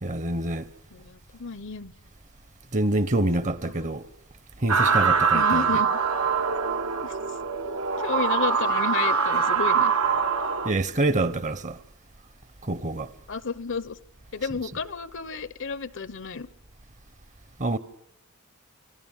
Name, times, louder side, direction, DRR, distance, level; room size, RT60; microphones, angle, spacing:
voice 1, 0.0-0.7 2.7-4.1 4.6-5.6 10.6-11.8 12.6-13.1 17.6-17.8, right 2 dB, 35° right, 0.9 m, -26 dB
voice 2, 0.9-1.9 3.8-3.9 5.3-6.0 7.0-7.1 8.0-9.9 13.3-14.0 14.3-16.5, left 5 dB, 60° left, 0.9 m, -31 dB
sound 1, 4.7-10.7, right 6 dB, 70° right, 1.2 m, -23 dB
28.5 x 20.0 x 7.3 m
head